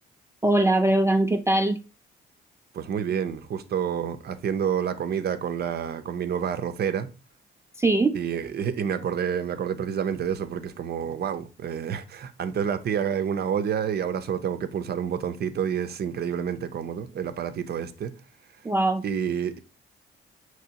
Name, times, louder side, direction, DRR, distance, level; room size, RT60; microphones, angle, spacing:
voice 1, 0.4-1.8 7.8-8.2 18.6-19.0, right 2 dB, 15° right, 0.3 m, -21 dB
voice 2, 2.7-7.1 8.1-18.1 19.0-19.6, right 8 dB, 55° right, 0.6 m, -28 dB
6.0 x 3.0 x 2.8 m
cardioid pair, 90°, 20 cm